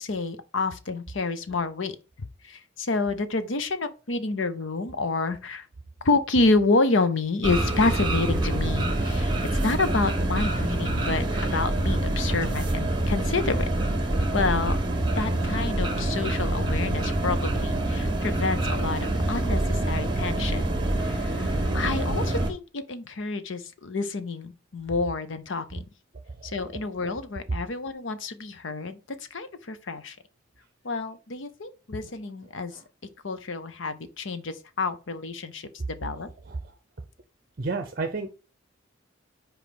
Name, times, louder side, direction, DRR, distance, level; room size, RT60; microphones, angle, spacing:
voice 1, 0.0-2.0 2.4-5.7 6.0-13.7 14.3-14.8 15.2-20.7 21.0-25.8 26.4-29.0 29.3-30.2 30.8-32.8 33.2-36.3, left 3 dB, 70° left, 0.7 m, -28 dB
sound 1, 7.4-22.5, right 1 dB, 25° right, 1.2 m, -26 dB
voice 2, 26.4-26.7 32.7-32.8 36.5-36.6 37.6-38.3, right 3 dB, 45° right, 0.7 m, -32 dB
5.2 x 4.7 x 5.9 m
head